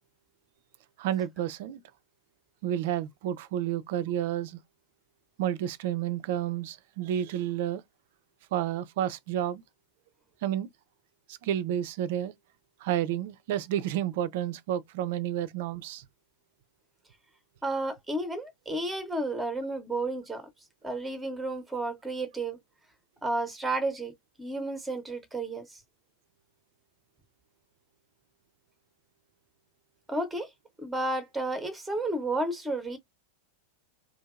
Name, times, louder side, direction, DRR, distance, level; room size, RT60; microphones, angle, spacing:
voice 1, 1.0-1.8 2.6-4.6 5.4-7.8 8.5-9.6 10.4-10.7 11.3-12.3 12.8-16.0, right 11 dB, 50° right, 0.4 m, -30 dB
voice 2, 17.6-20.4 20.8-22.6 23.2-24.1 24.4-25.8 30.1-30.5 30.8-33.0, right 2 dB, 5° right, 0.8 m, -32 dB
2.7 x 2.6 x 2.3 m
figure-of-eight pair, 90°, 0 cm